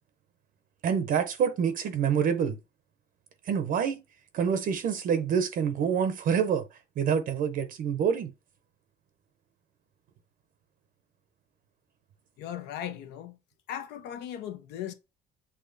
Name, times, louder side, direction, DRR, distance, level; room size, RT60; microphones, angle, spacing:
voice 1, 0.8-2.6 3.5-4.0 4.3-6.6 7.0-8.3, right 7 dB, 55° right, 0.6 m, -26 dB
voice 2, 12.4-13.4 13.7-14.9, left 10 dB, 85° left, 0.7 m, -37 dB
6.4 x 2.8 x 2.5 m
cardioid pair, 110°, 17 cm